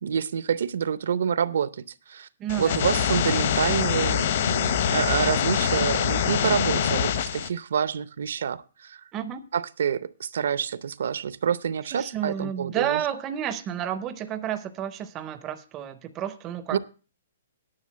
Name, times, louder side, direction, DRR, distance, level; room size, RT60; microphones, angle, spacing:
voice 1, 0.0-2.3 2.6-9.0 9.5-13.0 16.7-16.8, right 7 dB, 60° right, 0.6 m, -27 dB
voice 2, 2.4-2.8 9.1-9.4 11.9-16.8, right 10 dB, 15° right, 0.5 m, -31 dB
sound 1, 2.5-7.5, left 8 dB, 40° left, 0.8 m, -24 dB
10.5 x 6.3 x 7.3 m
hypercardioid pair, 180°, 0 cm